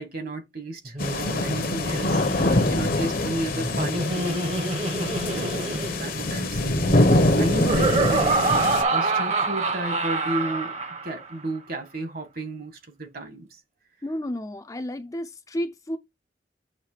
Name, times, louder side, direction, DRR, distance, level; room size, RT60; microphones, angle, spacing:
voice 1, 0.0-4.5 5.3-6.8 7.1-10.7 11.0-13.5, right 1 dB, 55° right, 1.6 m, -33 dB
Laughter, 0.9-11.3, right 3 dB, 40° right, 1.0 m, -27 dB
sound 1, 1.0-8.8, left 1 dB, 55° left, 0.9 m, -24 dB
voice 2, 14.0-16.0, equal, 20° left, 0.5 m, -31 dB
7.3 x 3.2 x 5.0 m
head